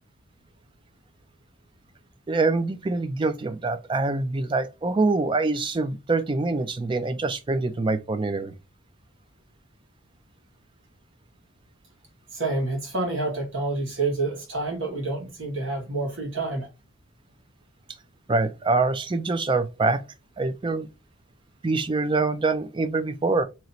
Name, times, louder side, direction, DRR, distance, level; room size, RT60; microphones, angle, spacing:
voice 1, 2.3-8.5 18.3-20.0 20.4-20.9 21.6-23.4, right 3 dB, 25° right, 0.3 m, -25 dB
voice 2, 12.3-16.7, right 2 dB, 65° right, 1.6 m, -28 dB
3.0 x 2.9 x 4.0 m
head